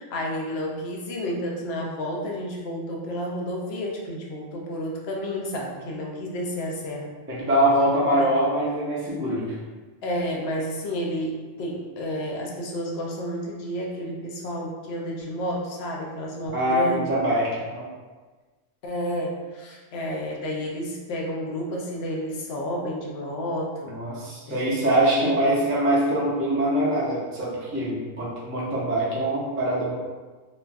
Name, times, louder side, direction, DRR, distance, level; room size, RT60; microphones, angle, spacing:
voice 1, 0.0-7.1 8.1-8.3 10.0-17.0 18.8-23.9 24.5-24.8 25.2-25.7, equal, 80° left, -1 dB, 0.8 m, -31 dB
voice 2, 7.3-9.5 16.5-17.8 23.9-30.0, right 1 dB, 15° right, -7 dB, 0.4 m, -23 dB
3.0 x 2.3 x 2.4 m, 1.3 s
omnidirectional pair, 1.1 m